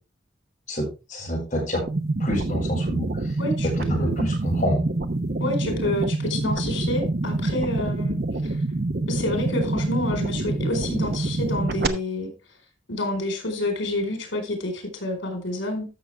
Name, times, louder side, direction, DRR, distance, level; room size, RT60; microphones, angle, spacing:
voice 1, 0.7-1.8 2.2-3.3 3.8-4.8, equal, 40° left, -4 dB, 6.2 m, -27 dB
sound 1, 1.9-11.9, right 2 dB, 55° right, 0.8 m, -26 dB
voice 2, 3.4-3.7 3.9-4.3 5.4-8.6 9.1-12.3 12.9-15.9, left 1 dB, 80° left, 4 dB, 4.4 m, -28 dB
13.5 x 6.7 x 3.4 m, 0.28 s
head